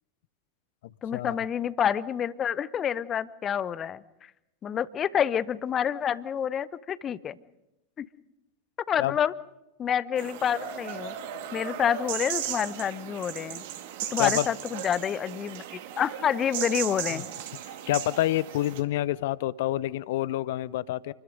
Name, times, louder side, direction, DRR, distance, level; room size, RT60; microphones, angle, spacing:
voice 1, 1.0-4.3 4.6-7.4 8.0-8.1 8.9-9.3 9.8-11.1 11.5-13.6 14.1-15.6 16.0-17.3, left 8 dB, 25° left, 18 dB, 0.9 m, -28 dB
sound 1, 10.2-18.8, right 10 dB, 50° right, 2.1 m, -36 dB
voice 2, 17.9-21.1, left 15 dB, 55° left, 20 dB, 0.8 m, -27 dB
28.5 x 21.5 x 5.4 m, 0.93 s
figure-of-eight pair, 90°, 0 cm